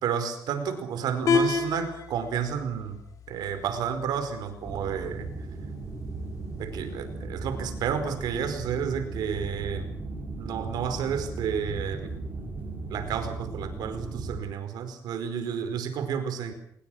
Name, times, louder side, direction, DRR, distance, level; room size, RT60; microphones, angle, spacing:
voice 1, 0.0-3.0 3.3-5.3 6.6-9.9 10.4-12.1 12.9-16.5, right 7 dB, 85° right, 10 dB, 4.7 m, -31 dB
sound 1, 1.3-7.3, left 5 dB, 55° left, 4.6 m, -32 dB
sound 2, 4.7-14.4, right 3 dB, 25° right, 6.8 m, -37 dB
27.5 x 21.0 x 6.4 m, 0.72 s
cardioid pair, 140°, 7 cm